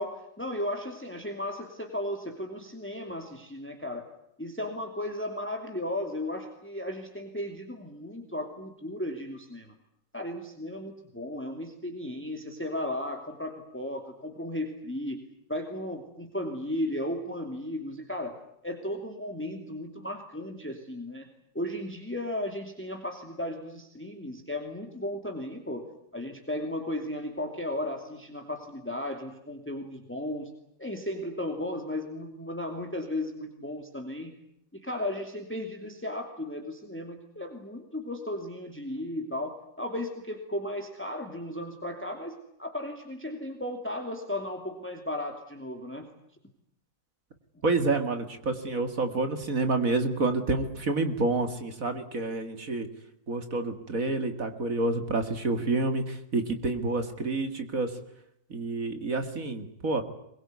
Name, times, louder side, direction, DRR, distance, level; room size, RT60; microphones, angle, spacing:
voice 1, 0.0-4.1 4.4-9.7 10.1-18.3 18.6-21.3 21.5-25.9 26.1-30.5 30.8-34.3 34.7-46.1 47.5-47.6, left 1 dB, 5° left, 4 dB, 2.7 m, -35 dB
voice 2, 47.6-52.9 53.3-57.9 58.5-60.0, right 3 dB, 55° right, 8 dB, 2.4 m, -28 dB
23.0 x 22.0 x 9.6 m, 0.77 s
omnidirectional pair, 1.8 m